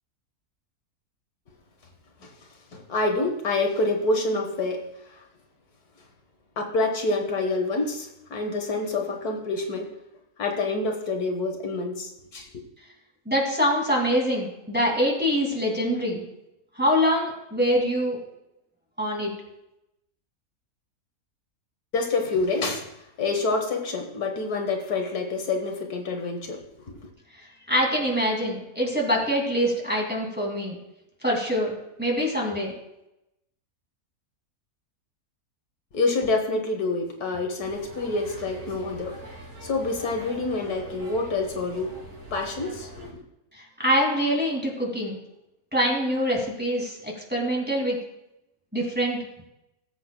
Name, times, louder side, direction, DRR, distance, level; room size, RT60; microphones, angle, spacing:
voice 1, 2.7-4.8 6.6-9.9 10.4-12.6 21.9-22.9 23.2-26.6 26.9-27.0 35.9-39.2 39.6-42.0 42.3-43.2, left 3 dB, 75° left, 3 dB, 1.8 m, -27 dB
voice 2, 13.3-16.2 16.8-18.2 19.0-19.3 27.7-30.8 31.2-32.7 43.6-45.2 45.7-48.0 48.7-49.2, equal, 5° right, -2 dB, 2.2 m, -24 dB
sound 1, 37.6-43.1, right 1 dB, 60° right, 3.0 m, -43 dB
19.0 x 8.0 x 2.2 m, 0.88 s
omnidirectional pair, 1.6 m